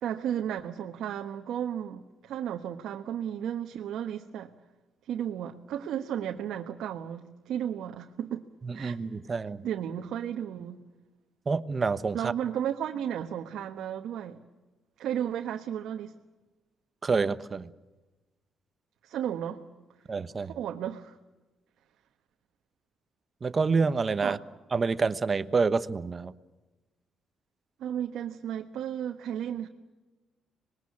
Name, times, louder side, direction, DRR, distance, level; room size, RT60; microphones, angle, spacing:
voice 1, 0.0-4.5 5.0-8.4 8.7-9.0 9.3-10.8 12.1-14.4 15.0-16.1 19.0-19.6 20.4-21.2 24.2-24.4 27.8-29.7, right 9 dB, 80° right, 1.2 m, -34 dB
voice 2, 8.6-9.6 11.5-12.3 17.0-17.7 20.1-20.5 23.4-24.4 24.7-26.3, right 4 dB, 35° right, 1.1 m, -27 dB
25.5 x 21.0 x 8.5 m
cardioid pair, 90°, 0 cm